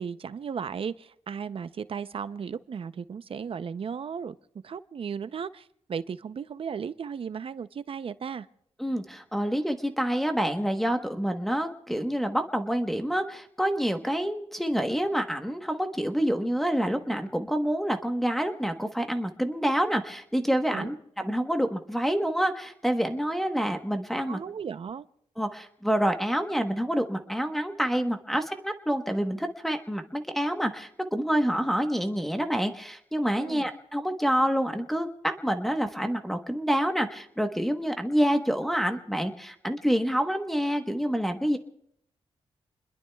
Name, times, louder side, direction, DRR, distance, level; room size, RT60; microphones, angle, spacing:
voice 1, 0.0-4.3 4.6-8.5 20.7-20.9 24.3-25.1 33.4-33.7, right 6 dB, 55° right, 0.6 m, -35 dB
voice 2, 8.8-24.4 25.4-41.6, equal, ahead, 1.1 m, -27 dB
29.0 x 21.5 x 2.3 m
cardioid pair, 100°, 11 cm